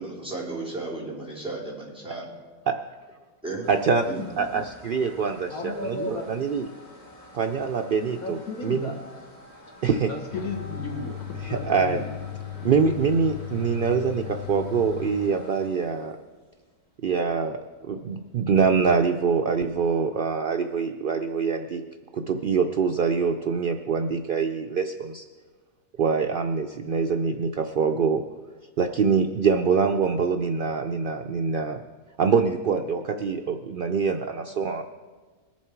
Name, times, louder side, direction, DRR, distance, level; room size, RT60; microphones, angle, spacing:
voice 1, 0.0-2.3 3.4-3.7 4.0-4.2, right 3 dB, 5° right, -6 dB, 3.3 m, -34 dB
sound 1, 3.6-18.4, left 1 dB, 25° left, 2.0 m, -49 dB
voice 2, 3.7-4.0 4.4-6.7 7.3-8.9 9.8-10.1 11.4-12.0 12.6-16.2 17.0-17.6 17.9-21.8 22.1-25.2 26.0-28.2 28.8-31.8 32.2-34.8, right 5 dB, 70° right, 5 dB, 0.5 m, -24 dB
voice 3, 5.5-6.3 8.2-9.0 10.1-11.1 11.5-12.1, left 3 dB, 75° left, 1 dB, 2.0 m, -33 dB
sound 2, 10.3-15.3, left 11 dB, 45° left, 0.8 m, -37 dB
21.5 x 7.3 x 4.6 m, 1.4 s
omnidirectional pair, 1.5 m